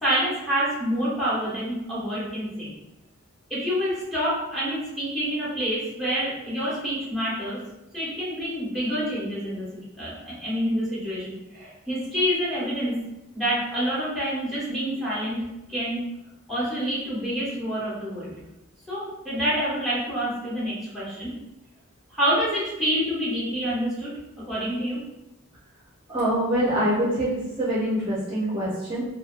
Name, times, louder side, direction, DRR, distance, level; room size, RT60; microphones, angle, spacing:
voice 1, 0.0-2.7 3.5-7.6 7.9-9.7 10.0-12.9 13.3-15.4 15.7-16.0 16.5-18.3 18.9-21.3 22.1-24.1 24.5-25.0, equal, ahead, -9 dB, 1.1 m, -27 dB
voice 2, 26.1-29.0, right 1 dB, 25° right, -9 dB, 0.6 m, -25 dB
2.6 x 2.2 x 2.4 m, 0.95 s
head